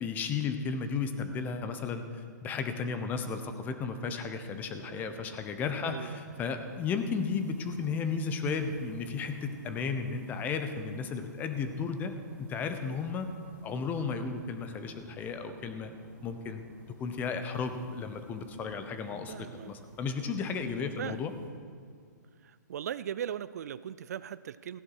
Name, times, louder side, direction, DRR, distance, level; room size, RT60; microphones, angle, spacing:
voice 1, 0.0-2.0 2.4-12.1 12.4-13.3 13.6-15.9 16.2-16.6 17.0-21.3, left 5 dB, 15° left, 8 dB, 0.9 m, -34 dB
sound 1, 4.4-21.5, right 3 dB, 15° right, 1.5 m, -56 dB
voice 2, 5.8-6.2 19.3-19.8 21.0-21.2 22.4-24.8, right 9 dB, 60° right, 16 dB, 0.4 m, -39 dB
15.5 x 10.5 x 4.8 m, 2.2 s
hypercardioid pair, 145°, 10 cm